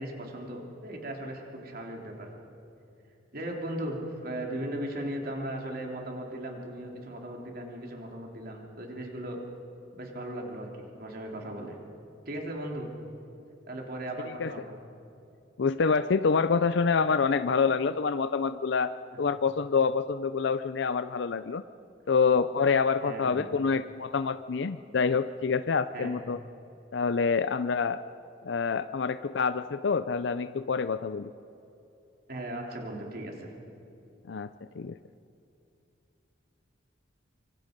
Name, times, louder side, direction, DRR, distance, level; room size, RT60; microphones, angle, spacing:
voice 1, 0.0-2.3 3.3-9.4 9.9-11.8 12.3-12.9 13.7-14.7 23.0-23.6 25.9-26.2 32.3-33.5, right 1 dB, 50° right, 1 dB, 3.3 m, -37 dB
voice 2, 15.6-18.9 19.2-21.6 22.1-26.4 26.9-28.0 28.4-31.3 34.3-34.5 34.8-35.0, left 5 dB, 60° left, 12 dB, 0.5 m, -26 dB
25.0 x 25.0 x 5.2 m, 2.8 s
head